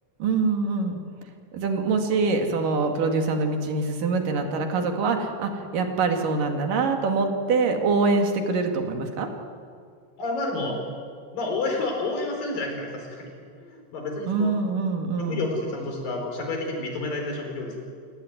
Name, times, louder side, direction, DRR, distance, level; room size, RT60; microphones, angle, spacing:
voice 1, 0.2-1.0 1.5-9.3 14.3-15.5, right 4 dB, 80° right, 4 dB, 3.7 m, -24 dB
voice 2, 10.2-10.8 11.3-13.3 13.6-14.6 15.2-17.8, left 2 dB, 85° left, 2 dB, 6.2 m, -30 dB
29.0 x 17.0 x 9.4 m, 2.2 s
omnidirectional pair, 3.9 m